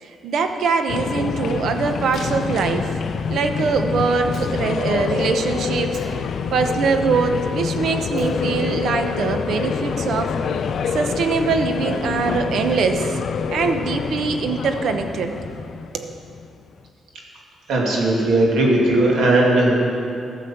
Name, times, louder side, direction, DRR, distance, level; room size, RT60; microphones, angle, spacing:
voice 1, 0.0-3.0 3.3-6.2 6.5-10.3 10.9-13.2 13.5-15.3 15.9-16.1, right 5 dB, 70° right, 7 dB, 0.8 m, -23 dB
sound 1, 0.9-16.7, left 6 dB, 60° left, 0.5 m, -26 dB
Slam, 2.1-3.2 4.2-5.2 5.9-6.8 7.9-8.9, equal, 45° right, 2.7 m, -40 dB
voice 2, 17.7-19.8, right 2 dB, 90° right, -2 dB, 2.3 m, -17 dB
13.0 x 6.9 x 5.9 m, 2.6 s
cardioid pair, 130°, 0 cm